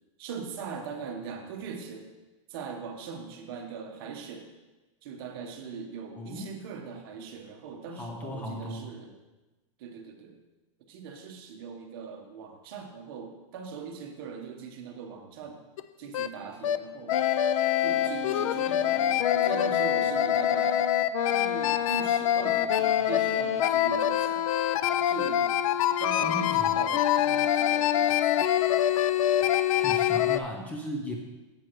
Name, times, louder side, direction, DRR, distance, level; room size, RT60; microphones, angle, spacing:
voice 1, 0.2-2.1 2.5-4.5 5.0-9.1 9.8-10.4 10.9-15.6 16.0-17.3 17.8-20.9 21.3-24.5 25.0-25.5 26.0-28.5, right 5 dB, 45° right, 3 dB, 1.1 m, -40 dB
voice 2, 6.2-6.5 7.9-8.9 26.2-26.7 29.8-31.2, left 1 dB, 10° left, 1 dB, 0.5 m, -36 dB
sound 1, 15.8-15.9 16.1-16.3 16.6-16.8 17.1-30.4, left 11 dB, 85° left, 0.4 m, -25 dB
9.3 x 7.7 x 3.1 m, 1.1 s
supercardioid pair, 170°, 17 cm